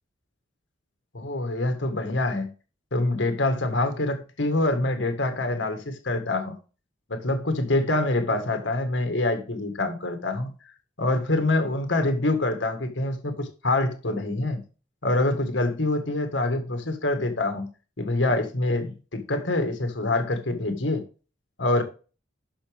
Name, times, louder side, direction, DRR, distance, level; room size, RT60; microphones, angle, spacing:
voice 1, 1.1-2.5 2.9-6.6 7.1-10.5 11.0-14.6 15.0-17.7 18.0-21.0 21.6-21.8, left 2 dB, 80° left, 1.8 m, -25 dB
11.5 x 6.1 x 3.6 m
head